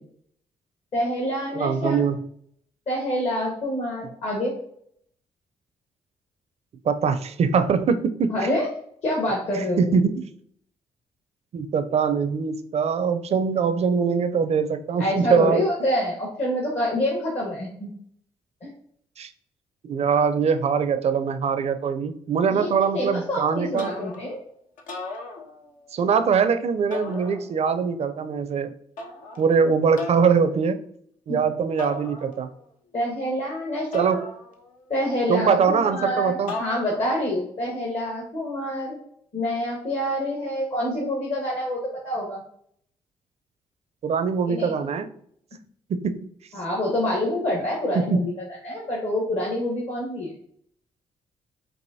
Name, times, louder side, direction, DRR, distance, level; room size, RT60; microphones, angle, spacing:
voice 1, 0.9-2.0 2.9-4.5 8.3-8.7 9.0-9.8 15.0-17.9 18.6-18.7 22.5-24.4 31.3-31.4 32.9-34.2 34.9-39.0 39.3-42.4 44.4-44.7 46.5-48.3 48.6-50.3, left 1 dB, 55° left, -3 dB, 1.3 m, -27 dB
voice 2, 1.5-2.2 6.8-8.3 9.8-10.3 11.5-15.6 19.2-19.3 19.8-23.9 25.9-28.7 29.4-30.8 31.3-32.5 33.9-34.3 35.3-36.5 44.0-45.1 45.9-46.2 47.9-48.2, right 6 dB, 50° right, 10 dB, 0.4 m, -22 dB
sound 1, 23.8-24.4 24.8-25.9 26.9-27.8 29.0-29.5 30.0-30.5 31.8-32.6 33.9-34.9 36.5-37.2, left 2 dB, 75° left, 0.7 m, -36 dB
4.7 x 2.6 x 2.7 m, 0.65 s
hypercardioid pair, 50°, 14 cm